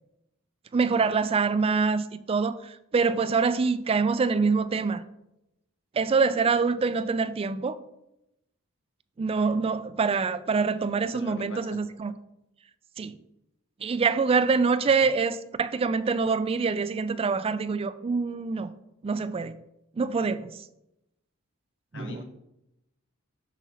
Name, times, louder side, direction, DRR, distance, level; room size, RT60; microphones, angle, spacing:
voice 1, 0.7-5.0 5.9-7.8 9.2-12.1 13.0-13.1 13.8-18.7 19.0-19.6 20.0-20.6 21.9-22.2, right 4 dB, 25° right, 14 dB, 0.3 m, -25 dB
voice 2, 11.1-11.8 21.9-22.2, left 2 dB, 60° left, 4 dB, 1.1 m, -41 dB
8.0 x 6.0 x 2.9 m, 0.87 s
head